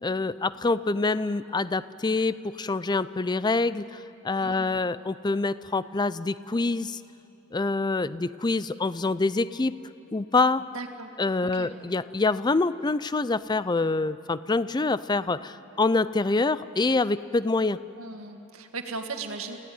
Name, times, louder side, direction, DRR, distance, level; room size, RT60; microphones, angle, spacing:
voice 1, 0.0-7.0 7.5-9.8 10.1-10.7 11.2-17.8, left 3 dB, 20° left, 16 dB, 0.5 m, -26 dB
voice 2, 4.4-4.7 10.7-11.1 11.4-11.7 18.0-19.6, right 3 dB, 85° right, 5 dB, 1.8 m, -37 dB
28.0 x 16.0 x 9.2 m, 3.0 s
head